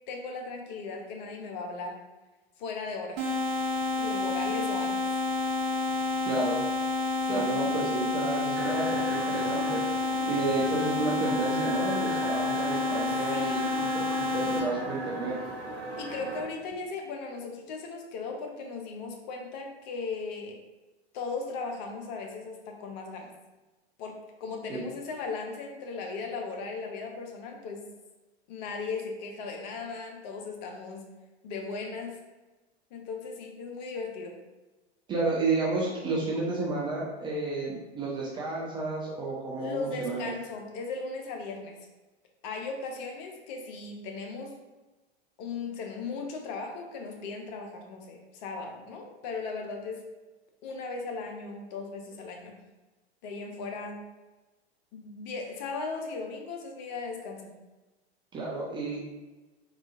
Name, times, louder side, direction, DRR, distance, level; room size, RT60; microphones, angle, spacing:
voice 1, 0.1-2.0 2.6-3.2 4.0-5.1 7.2-7.6 13.3-13.8 16.0-20.6 21.1-23.3 24.0-27.8 28.5-31.1 31.4-32.2 32.9-34.4 39.6-41.8 42.4-44.5 45.4-50.0 50.6-52.5 53.2-54.0 54.9-57.5, left 4 dB, 40° left, 2 dB, 0.6 m, -37 dB
sound 1, 3.2-14.6, left 3 dB, 35° right, 0.7 m, -29 dB
voice 2, 6.2-6.7 7.3-15.4 24.7-24.9 35.1-40.3 58.3-59.0, right 3 dB, 15° right, -5 dB, 0.4 m, -31 dB
sound 2, 8.5-16.4, right 1 dB, 70° right, 1.1 m, -38 dB
3.8 x 2.3 x 2.4 m, 1.2 s
figure-of-eight pair, 95°, 32 cm